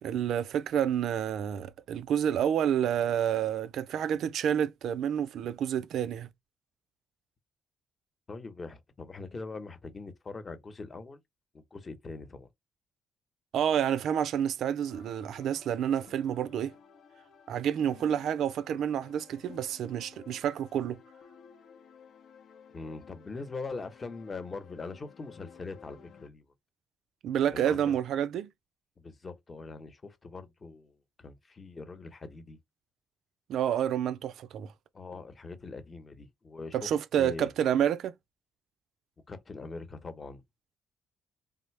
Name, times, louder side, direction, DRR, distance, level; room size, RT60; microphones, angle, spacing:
voice 1, 0.0-6.3 13.5-16.7 17.5-21.0 27.2-28.5 33.5-34.7 36.7-38.1, right 9 dB, 75° right, 0.3 m, -29 dB
voice 2, 8.3-11.2 11.5-12.5 22.7-26.4 27.5-27.9 29.0-32.6 34.9-37.5 39.3-40.4, left 3 dB, 30° left, 0.9 m, -42 dB
sound 1, 14.9-26.3, left 6 dB, 65° left, 0.7 m, -55 dB
3.4 x 2.0 x 3.2 m
cardioid pair, 90°, 0 cm